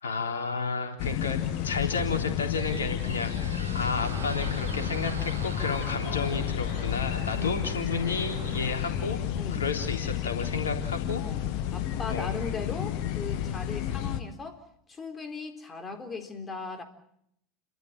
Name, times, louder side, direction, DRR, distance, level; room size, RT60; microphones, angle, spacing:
voice 1, 0.0-9.2 9.5-11.2 12.1-12.3, left 4 dB, 75° left, 3 dB, 3.5 m, -32 dB
sound 1, 1.0-14.2, left 10 dB, 50° left, 1.7 m, -31 dB
Squeak, 1.9-10.5, right 5 dB, 80° right, 1.4 m, -47 dB
sound 2, 4.2-9.7, right 5 dB, 60° right, 4.4 m, -44 dB
voice 2, 7.3-7.7 9.3-9.7 11.1-14.6 14.9-16.8, left 4 dB, 20° left, 5 dB, 4.0 m, -38 dB
30.0 x 13.5 x 9.0 m, 0.73 s
figure-of-eight pair, 80°, 0 cm